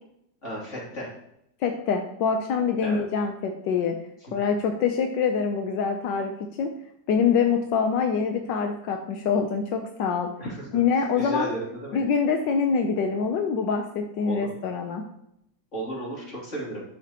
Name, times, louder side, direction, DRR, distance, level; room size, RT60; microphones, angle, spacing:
voice 1, 0.4-1.1 2.8-3.0 10.4-10.6 11.1-12.0 14.3-14.5 15.7-16.8, right 1 dB, 40° left, -5 dB, 3.1 m, -33 dB
voice 2, 1.6-4.0 4.3-6.3 6.6-6.7 7.1-10.3 10.7-11.5 11.9-15.0, left 6 dB, 80° left, 4 dB, 1.4 m, -25 dB
12.0 x 6.0 x 2.9 m, 0.77 s
omnidirectional pair, 1.9 m